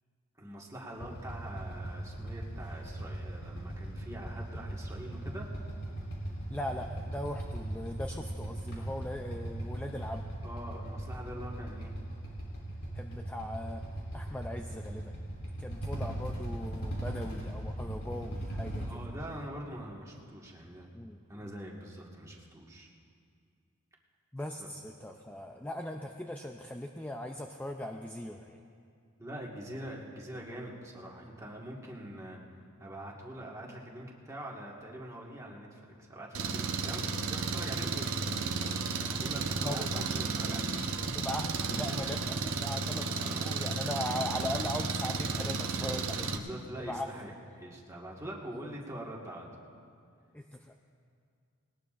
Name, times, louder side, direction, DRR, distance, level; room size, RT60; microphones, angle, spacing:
voice 1, 0.4-5.5 10.4-11.9 18.8-20.9 21.3-22.9 24.6-24.7 25.1-25.2 29.2-32.4 32.8-40.8 43.2-43.5 45.8-49.5, right 1 dB, 15° right, -3 dB, 1.7 m, -44 dB
Motorcycle / Idling, 1.0-18.9, right 1 dB, 80° left, 3.2 m, -39 dB
voice 2, 6.5-10.2 12.9-13.8 14.1-15.1 15.6-19.0 20.9-21.2 24.3-28.6 39.6-40.0 41.1-46.3 46.8-47.3 48.6-48.7 50.3-50.8, left 1 dB, 5° left, 3 dB, 0.4 m, -39 dB
Engine, 36.3-46.4, right 4 dB, 65° right, 0.8 m, -33 dB
20.0 x 19.0 x 2.5 m, 2.3 s
head